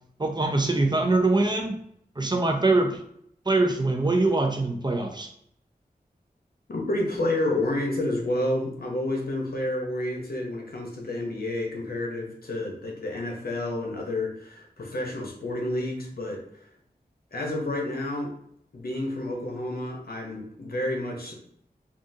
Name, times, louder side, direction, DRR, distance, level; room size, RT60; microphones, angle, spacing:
voice 1, 0.2-1.8 2.2-3.0 3.5-5.3, right 2 dB, 25° right, 4 dB, 0.5 m, -23 dB
voice 2, 6.7-16.4 17.3-18.3 18.7-21.3, left 1 dB, 70° left, -1 dB, 0.9 m, -30 dB
3.6 x 2.5 x 2.7 m, 0.67 s
wide cardioid pair, 55°, 16 cm